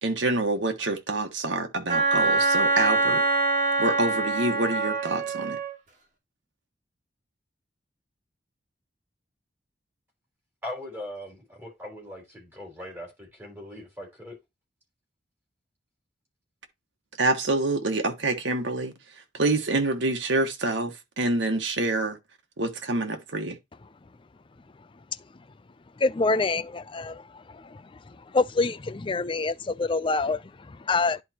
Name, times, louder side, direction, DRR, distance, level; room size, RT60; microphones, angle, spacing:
voice 1, 0.0-3.2 3.8-5.6 17.2-18.9 19.3-22.2 22.6-23.6, right 2 dB, 85° right, 1.5 m, -26 dB
Wind instrument woodwind instrument, 1.9-5.7, right 2 dB, 45° right, 2.8 m, -24 dB
voice 2, 10.6-14.3, left 1 dB, 15° right, 4.1 m, -40 dB
voice 3, 26.0-27.8 28.3-31.2, left 3 dB, 25° left, 0.4 m, -26 dB
11.0 x 4.6 x 2.9 m
head